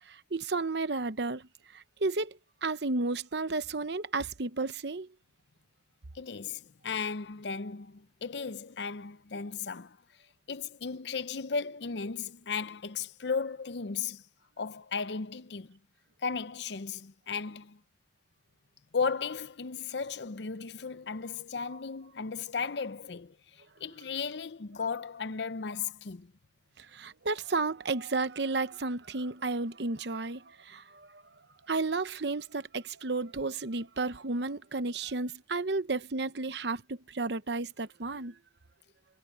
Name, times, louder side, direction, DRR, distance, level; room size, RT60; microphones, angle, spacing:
voice 1, 0.1-5.1 26.8-31.2 31.7-38.3, right 3 dB, 60° right, 0.9 m, -33 dB
voice 2, 6.1-10.0 10.5-14.2 14.6-15.8 16.2-17.8 18.9-26.3, left 5 dB, 65° left, 0.7 m, -35 dB
head